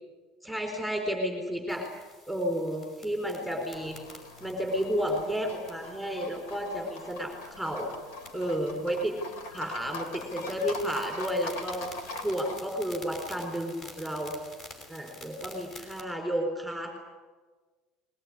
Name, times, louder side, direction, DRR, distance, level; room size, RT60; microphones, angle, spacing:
voice 1, 0.4-1.9 2.3-4.0 4.4-7.9 8.3-9.2 9.5-11.9 12.2-14.3 14.9-16.9, equal, ahead, 1 dB, 4.3 m, -31 dB
sound 1, 1.7-16.0, left 1 dB, 30° left, 5.6 m, -50 dB
Livestock farm animals working animals, 3.7-12.6, left 2 dB, 80° left, 3.5 m, -43 dB
22.0 x 20.5 x 9.8 m, 1.3 s
cardioid pair, 160°, 0 cm